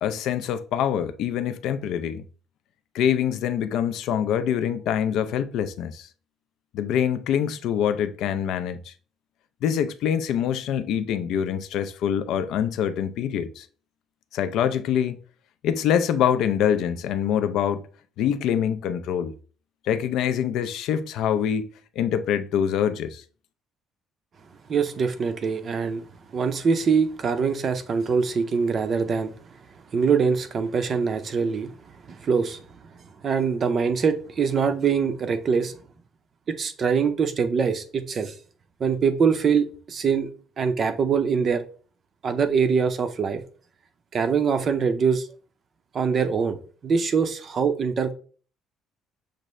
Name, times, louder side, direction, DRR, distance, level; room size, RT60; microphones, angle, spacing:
voice 1, 0.0-2.2 2.9-6.1 6.7-8.9 9.6-13.7 14.3-15.2 15.6-17.9 18.2-19.3 19.8-21.7 22.0-23.2, left 9 dB, 60° left, 0.4 m, -25 dB
voice 2, 24.7-26.1 26.3-29.3 29.9-31.7 32.1-32.7 33.2-35.7 36.5-38.3 38.8-40.3 40.6-41.6 42.2-43.4 44.1-45.3 45.9-46.6 46.8-48.1, right 6 dB, 30° right, 0.5 m, -23 dB
6.5 x 2.5 x 3.1 m
cardioid pair, 175°, 0 cm